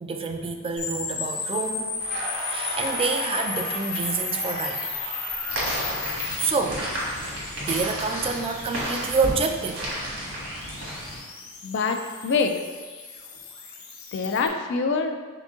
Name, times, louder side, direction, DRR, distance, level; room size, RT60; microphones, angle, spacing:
voice 1, 0.0-2.0 2.5-5.0 6.4-6.8 7.2-9.9, right 4 dB, 25° right, 5 dB, 0.3 m, -28 dB
sound 1, 0.8-14.5, left 5 dB, 85° left, 0.8 m, -35 dB
Crackle, 2.0-7.8 8.1-9.9, right 1 dB, 50° right, 0.9 m, -36 dB
sound 2, 5.5-11.2, equal, 70° right, 1.5 m, -32 dB
voice 2, 11.6-12.6 14.1-15.1, left 4 dB, 60° left, 6 dB, 0.4 m, -25 dB
3.8 x 3.6 x 3.6 m, 1.5 s
head